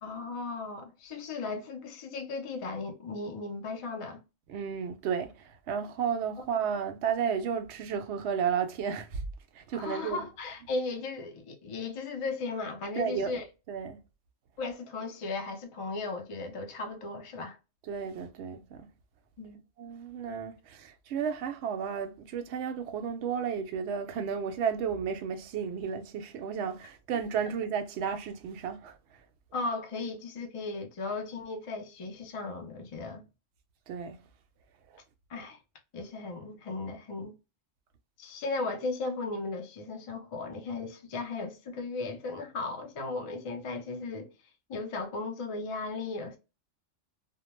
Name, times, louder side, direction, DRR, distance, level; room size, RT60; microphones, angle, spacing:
voice 1, 0.0-4.2 9.7-13.5 14.6-17.6 19.4-19.6 29.5-33.2 35.3-35.6 35.9-37.3 38.2-44.3 44.7-46.4, left 3 dB, 55° left, 0.3 m, -36 dB
voice 2, 4.5-5.3 5.7-9.1 9.6-10.2 13.0-13.4 13.7-14.0 17.9-18.9 19.8-28.9 33.9-34.2, right 7 dB, 65° right, 0.8 m, -33 dB
2.1 x 2.1 x 3.0 m
omnidirectional pair, 1.3 m